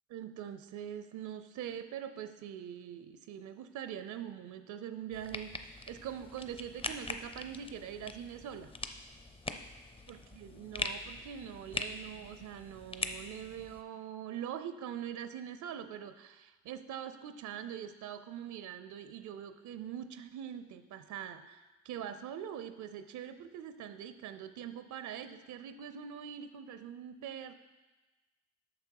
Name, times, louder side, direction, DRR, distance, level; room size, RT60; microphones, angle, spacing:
voice 1, 0.1-8.7 10.1-27.5, right 9 dB, 75° right, 11 dB, 0.5 m, -43 dB
sound 1, 5.1-13.8, left 2 dB, 20° left, 0.6 m, -42 dB
8.7 x 6.3 x 4.6 m, 1.2 s
cardioid pair, 90°, 30 cm